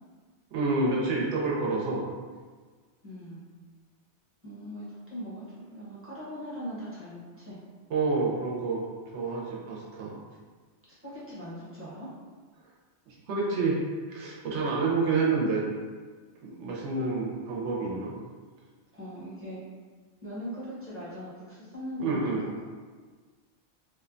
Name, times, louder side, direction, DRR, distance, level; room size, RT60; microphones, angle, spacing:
voice 1, 0.5-2.1 7.9-8.8 9.1-10.1 13.1-13.8 14.1-15.6 16.4-18.1 22.0-22.4, right 3 dB, 85° right, -3 dB, 0.9 m, -28 dB
voice 2, 3.0-3.4 4.4-7.6 11.0-12.1 18.9-19.6 20.2-22.2, equal, 15° right, -10 dB, 0.7 m, -40 dB
2.7 x 2.1 x 2.5 m, 1.5 s
omnidirectional pair, 1.2 m